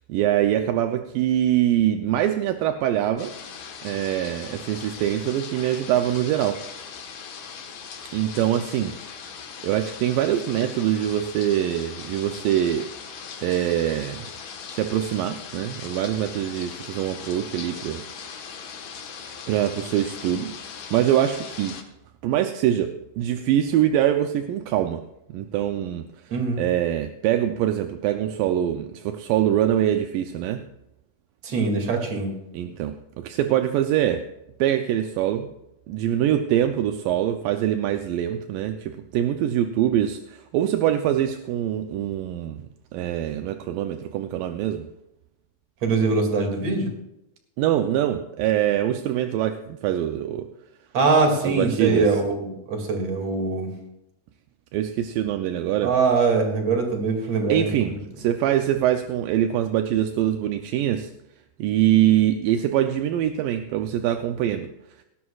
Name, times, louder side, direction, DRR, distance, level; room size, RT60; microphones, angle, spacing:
voice 1, 0.1-3.3 3.8-6.6 8.1-9.2 9.6-12.9 13.4-14.3 14.7-18.4 19.5-20.5 20.9-21.8 22.2-25.0 25.3-26.1 26.6-30.6 32.5-34.3 34.6-35.5 35.9-44.9 47.6-50.4 51.4-52.1 54.7-55.9 57.5-61.1 61.6-64.7, right 11 dB, 80° right, 7 dB, 2.3 m, -24 dB
sound 1, 3.2-21.8, left 6 dB, 60° left, 2.5 m, -39 dB
voice 2, 26.3-26.6 31.4-32.3 45.8-46.9 50.9-53.7 55.8-57.7, right 4 dB, 50° right, 2 dB, 3.3 m, -22 dB
19.0 x 16.0 x 2.4 m, 0.87 s
omnidirectional pair, 4.0 m